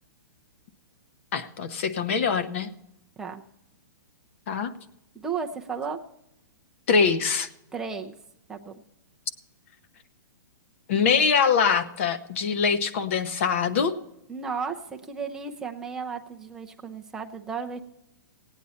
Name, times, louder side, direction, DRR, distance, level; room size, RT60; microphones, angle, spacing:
voice 1, 1.3-2.7 4.5-4.7 6.9-7.5 10.9-13.9, left 6 dB, 40° left, 11 dB, 0.9 m, -23 dB
voice 2, 5.1-6.0 7.7-8.1 8.5-8.7 14.3-17.8, right 5 dB, 5° right, 2 dB, 0.5 m, -34 dB
17.5 x 9.1 x 4.2 m, 0.87 s
hypercardioid pair, 175°, 11 cm